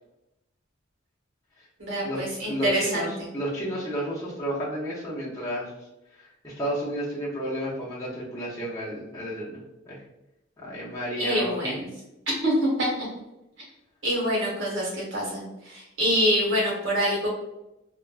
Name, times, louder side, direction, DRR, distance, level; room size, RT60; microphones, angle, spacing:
voice 1, 1.8-3.1 11.2-11.9 12.3-13.1 14.0-17.3, equal, 70° right, -4 dB, 1.3 m, -25 dB
voice 2, 2.5-5.7 6.2-10.0 10.6-11.7, equal, 15° left, -7 dB, 0.7 m, -32 dB
3.3 x 2.3 x 2.4 m, 0.93 s
head